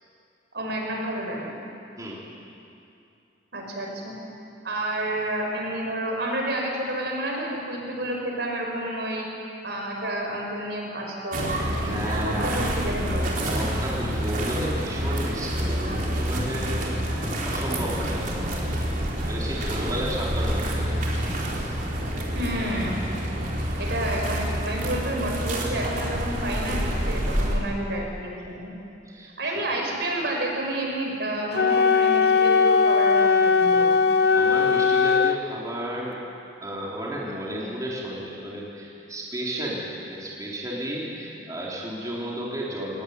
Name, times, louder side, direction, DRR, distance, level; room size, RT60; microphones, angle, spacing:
voice 1, 0.5-1.5 3.5-4.1 4.6-9.3 9.6-13.4 22.3-23.0 23.8-28.7 29.4-34.0, right 1 dB, 70° right, 0 dB, 5.8 m, -30 dB
sound 1, 11.3-27.6, equal, 50° right, 4.4 m, -28 dB
voice 2, 11.8-12.8 13.5-16.8 17.5-18.4 18.8-18.9 19.3-21.0 21.4-21.7 29.0-29.5 34.3-36.2 36.6-43.0, equal, 20° right, -5 dB, 4.0 m, -33 dB
Wind instrument woodwind instrument, 31.5-35.4, left 5 dB, 65° left, 0.7 m, -19 dB
22.5 x 20.0 x 9.8 m, 2.6 s
head